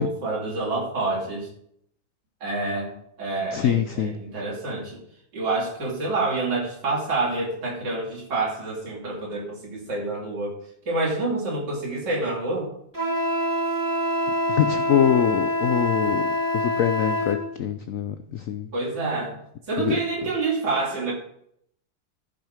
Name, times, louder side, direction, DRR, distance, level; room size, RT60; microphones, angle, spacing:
voice 1, 0.0-1.5 2.4-5.0 5.3-10.5 10.9-12.7 18.7-19.4 19.7-21.1, right 3 dB, 70° right, -4 dB, 3.4 m, -27 dB
voice 2, 3.5-4.1 14.5-18.7 19.8-20.0, left 9 dB, 70° left, 10 dB, 0.7 m, -24 dB
Wind instrument woodwind instrument, 12.9-17.4, equal, 10° right, 1.3 m, -25 dB
14.0 x 6.4 x 5.0 m, 0.71 s
omnidirectional pair, 2.0 m